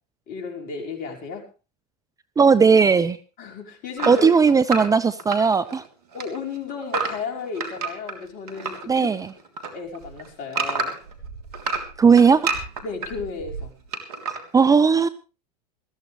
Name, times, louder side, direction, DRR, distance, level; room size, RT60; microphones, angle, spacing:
voice 1, 0.3-1.5 3.4-4.5 6.1-9.1 9.7-11.0 12.8-13.7, left 5 dB, 45° left, 2 dB, 5.3 m, -34 dB
voice 2, 2.4-3.2 4.1-5.8 8.9-9.3 12.0-12.5 14.5-15.1, right 5 dB, 15° right, 14 dB, 0.8 m, -17 dB
sound 1, 4.0-5.9 6.1-8.8 9.2-11.1 11.5-13.1 13.9-14.4, right 4 dB, 75° right, 3.2 m, -29 dB
sound 2, 8.2-8.3 9.8-10.3 10.7-10.8 11.0-13.8, right 5 dB, 60° right, 7.7 m, -41 dB
20.5 x 14.0 x 3.3 m, 0.32 s
hypercardioid pair, 95°, 20 cm